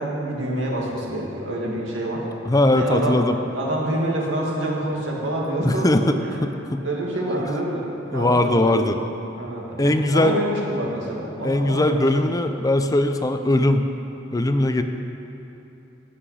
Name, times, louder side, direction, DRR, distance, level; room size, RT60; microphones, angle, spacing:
voice 1, 0.0-2.2 2.7-3.1 3.5-6.5 6.8-8.7 9.4-12.1, right 1 dB, 90° right, -2 dB, 2.2 m, -27 dB
voice 2, 2.4-3.4 5.6-6.8 8.1-9.0 9.8-10.4 11.4-13.8 14.3-14.8, left 1 dB, 20° left, 7 dB, 0.5 m, -20 dB
12.5 x 5.9 x 8.5 m, 2.9 s
head